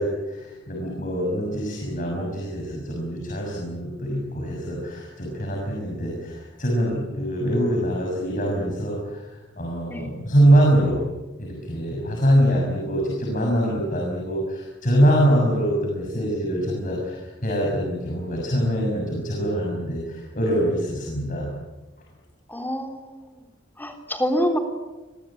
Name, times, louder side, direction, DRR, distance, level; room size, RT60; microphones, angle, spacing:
voice 1, 0.0-11.0 11.4-21.5, equal, 45° left, -1 dB, 6.7 m, -24 dB
voice 2, 22.5-23.3 23.8-24.6, equal, 10° left, 5 dB, 3.6 m, -26 dB
28.5 x 22.5 x 8.8 m, 1.2 s
head